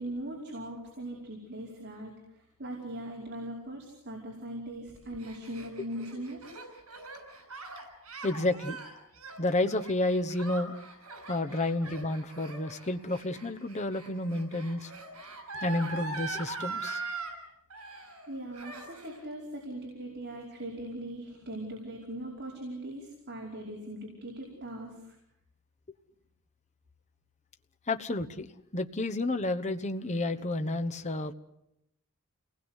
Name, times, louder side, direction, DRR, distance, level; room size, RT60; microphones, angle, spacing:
voice 1, 0.0-6.4 18.3-25.2, right 1 dB, 50° right, -2 dB, 5.3 m, -40 dB
Gasp, 4.9-17.3 17.7-18.3 18.5-19.2, right 3 dB, 80° right, 6.9 m, -42 dB
voice 2, 8.2-8.8 9.4-10.7 11.3-14.9 15.6-17.0 27.9-31.3, left 2 dB, 30° left, 7 dB, 1.1 m, -30 dB
28.5 x 20.0 x 8.2 m, 0.82 s
head